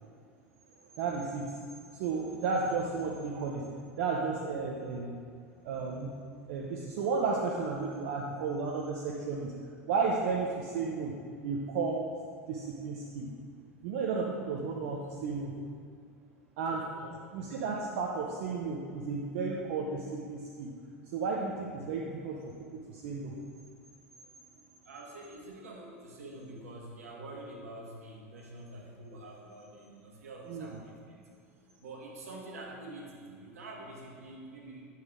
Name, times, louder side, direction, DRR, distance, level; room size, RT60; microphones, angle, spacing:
voice 1, 1.0-1.6 1.9-3.6 4.0-5.2 5.6-6.1 6.5-9.5 9.9-11.1 11.4-12.1 12.5-13.3 13.8-15.5 16.6-16.8 17.3-20.7 21.1-23.3 30.5-30.7, right 4 dB, 60° right, -2 dB, 0.8 m, -33 dB
voice 2, 16.7-17.1 24.8-31.4 31.8-34.9, right 2 dB, 75° right, -1 dB, 1.6 m, -46 dB
9.8 x 5.8 x 3.6 m, 2.2 s
hypercardioid pair, 85°, 8 cm